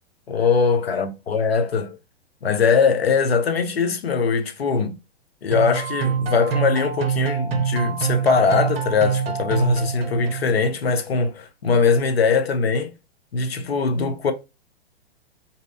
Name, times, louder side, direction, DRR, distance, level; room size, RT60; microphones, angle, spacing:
voice 1, 0.3-2.0 2.4-4.9 5.4-12.9 13.3-14.3, left 5 dB, 70° left, 0.6 m, -21 dB
sound 1, 5.5-10.7, right 7 dB, 65° right, 0.5 m, -25 dB
2.6 x 2.0 x 2.6 m
figure-of-eight pair, 110°, 32 cm